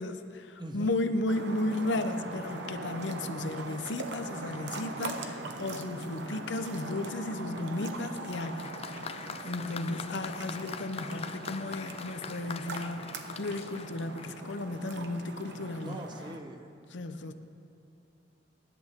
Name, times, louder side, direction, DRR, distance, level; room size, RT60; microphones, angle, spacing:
voice 1, 0.0-8.7 9.1-16.0 16.9-17.3, left 2 dB, 80° left, 9 dB, 0.8 m, -34 dB
voice 2, 0.6-0.9 15.8-16.7 17.3-17.4, right 1 dB, 25° right, 5 dB, 1.0 m, -41 dB
sound 1, 1.3-16.4, right 2 dB, 70° right, 1.0 m, -41 dB
Applause, 8.3-14.8, left 6 dB, 35° left, 0.5 m, -43 dB
23.5 x 11.0 x 3.7 m, 2.5 s
head